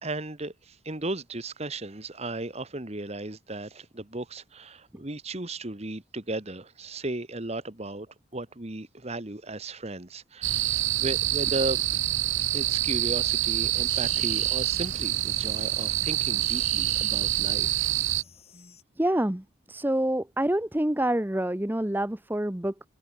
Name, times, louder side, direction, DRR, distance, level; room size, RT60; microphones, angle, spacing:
voice 1, 0.0-11.8 12.5-17.9, right 2 dB, 30° right, 1.5 m, -35 dB
sound 1, 10.4-18.2, right 14 dB, 75° right, 1.1 m, -26 dB
sound 2, 13.8-18.8, left 6 dB, 30° left, 3.8 m, -48 dB
voice 2, 19.0-22.9, right 1 dB, 10° right, 0.7 m, -27 dB
head